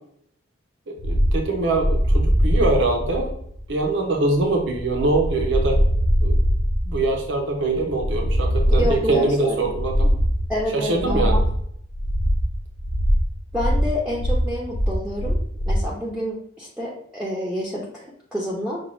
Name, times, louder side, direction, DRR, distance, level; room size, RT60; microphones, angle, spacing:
voice 1, 0.9-3.3 3.7-5.8 6.2-6.4 6.8-10.1 10.7-11.4, right 2 dB, 70° right, 2 dB, 0.6 m, -23 dB
sound 1, 1.0-15.9, equal, 55° left, 0.5 m, -22 dB
voice 2, 8.8-9.7 10.5-11.4 13.5-15.4 15.7-18.8, equal, 5° right, -5 dB, 0.5 m, -28 dB
5.9 x 2.3 x 3.0 m, 0.69 s
head